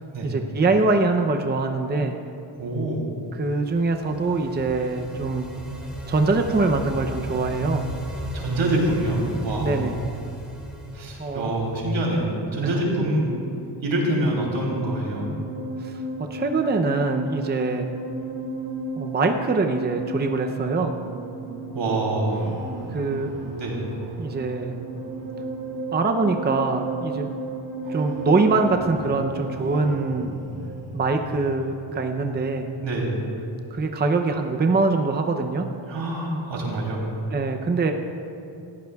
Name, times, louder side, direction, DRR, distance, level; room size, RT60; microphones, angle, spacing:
voice 1, 0.2-2.2 3.3-5.5 6.1-7.8 9.6-10.0 11.2-11.5 12.6-12.8 15.8-16.0 16.3-17.9 19.0-20.9 22.9-23.3 24.2-24.8 25.9-27.3 27.9-30.4 30.9-32.7 33.7-35.7 37.3-37.9, right 3 dB, 20° right, 4 dB, 0.6 m, -23 dB
voice 2, 2.6-3.0 8.3-9.8 10.9-13.3 13.8-15.3 21.7-22.5 23.6-23.8 32.8-33.1 35.9-37.0, right 1 dB, 75° right, -2 dB, 3.2 m, -25 dB
sound 1, 3.4-12.2, equal, ahead, 3.2 m, -35 dB
sound 2, 14.4-32.9, right 2 dB, 45° right, 2.0 m, -34 dB
17.0 x 15.0 x 2.4 m, 2.7 s
cardioid pair, 95°, 45 cm